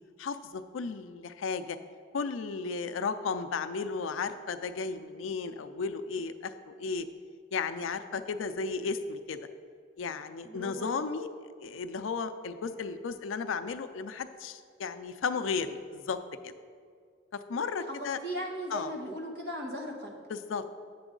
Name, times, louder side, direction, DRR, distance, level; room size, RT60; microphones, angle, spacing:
voice 1, 0.2-1.8 2.1-7.1 7.5-9.4 10.0-11.3 11.6-16.2 16.4-16.5 17.3-18.2 18.7-18.9 20.3-20.6, left 5 dB, 90° left, 10 dB, 0.4 m, -34 dB
voice 2, 10.4-11.0 18.2-20.2, equal, 55° right, 0 dB, 1.2 m, -37 dB
8.0 x 6.8 x 3.8 m, 2.1 s
head